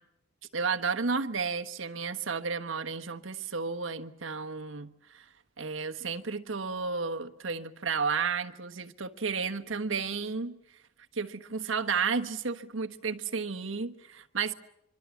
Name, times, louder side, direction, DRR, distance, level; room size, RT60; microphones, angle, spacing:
voice 1, 0.5-5.2 5.6-10.6 11.1-14.5, right 5 dB, 75° right, 1.2 m, -32 dB
24.5 x 24.5 x 7.2 m
head